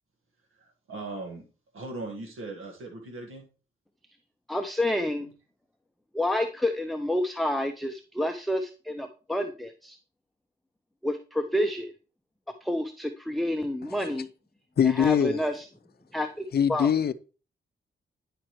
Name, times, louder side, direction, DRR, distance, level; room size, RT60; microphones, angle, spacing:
voice 1, 0.5-1.5 1.7-3.4 5.2-5.3, right 2 dB, 85° right, 1.6 m, -39 dB
voice 2, 4.5-5.3 6.1-10.0 11.0-11.9 12.6-14.3 14.8-15.6 16.1-16.9, left 1 dB, ahead, 0.5 m, -29 dB
voice 3, 14.8-15.4 16.5-17.1, left 8 dB, 50° left, 0.5 m, -22 dB
10.0 x 5.1 x 3.1 m
cardioid pair, 95°, 21 cm